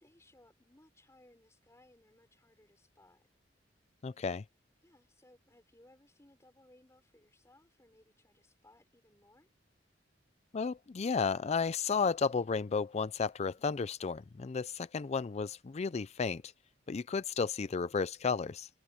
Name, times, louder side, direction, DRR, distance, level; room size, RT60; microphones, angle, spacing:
voice 1, 0.0-3.3 4.8-9.5, left 1 dB, 15° left, 3.9 m, -64 dB
voice 2, 4.0-4.4 10.5-16.4 16.9-18.7, left 5 dB, 35° left, 0.4 m, -33 dB
head